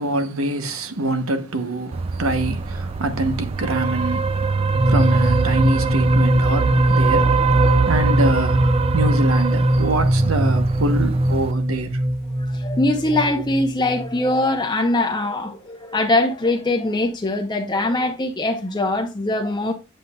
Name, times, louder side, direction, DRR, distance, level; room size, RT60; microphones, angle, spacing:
voice 1, 0.0-7.6 7.9-12.0, right 2 dB, 90° right, 1.0 m, -25 dB
sound 1, 1.9-11.5, right 4 dB, 30° right, 0.3 m, -23 dB
sound 2, 4.7-14.4, right 1 dB, 55° right, 1.4 m, -20 dB
voice 2, 12.5-19.7, left 2 dB, 20° left, 0.7 m, -22 dB
8.3 x 7.7 x 2.3 m
head